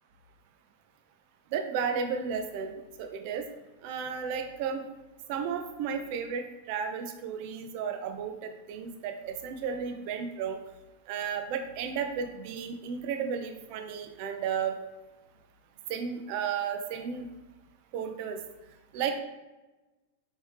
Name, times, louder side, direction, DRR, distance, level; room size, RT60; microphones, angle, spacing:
voice 1, 1.5-3.4 3.8-4.8 5.3-10.6 11.1-14.8 15.9-17.3 17.9-18.4 18.9-19.2, right 6 dB, 45° right, 6 dB, 0.5 m, -33 dB
4.2 x 3.3 x 3.2 m, 1.1 s
supercardioid pair, 165°, 0 cm